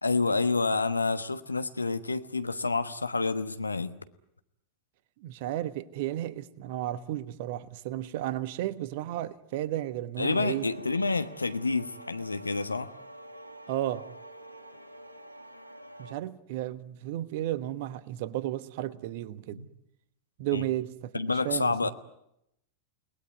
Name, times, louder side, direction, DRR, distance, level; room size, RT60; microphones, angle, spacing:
voice 1, 0.0-4.0 10.2-12.9 19.5-19.7 20.5-20.6 21.1-21.9, left 3 dB, 80° left, 1.2 m, -28 dB
voice 2, 5.2-10.7 13.7-14.1 16.0-19.6 20.4-21.9, right 13 dB, 50° right, 1.2 m, -33 dB
sound 1, 10.3-16.1, right 1 dB, 85° right, 1.7 m, -47 dB
29.0 x 19.5 x 9.4 m
figure-of-eight pair, 90°, 0 cm